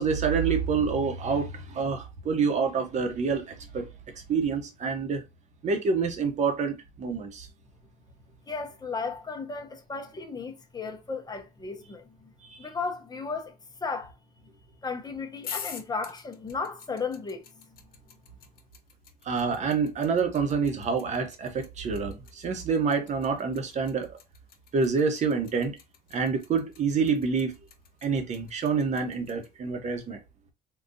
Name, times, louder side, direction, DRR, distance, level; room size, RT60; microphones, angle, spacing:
voice 1, 0.0-3.9 4.3-5.2 5.6-7.5 12.5-12.6 19.2-24.2 24.7-25.7 26.1-27.5 28.0-30.2, right 5 dB, 45° right, 0.9 m, -27 dB
voice 2, 8.5-12.3 12.6-13.5 13.8-14.1 14.8-17.4, left 4 dB, 25° left, 0.6 m, -35 dB
sound 1, 15.4-29.5, left 8 dB, 60° left, 0.9 m, -45 dB
3.7 x 2.3 x 2.6 m
cardioid pair, 110°, 17 cm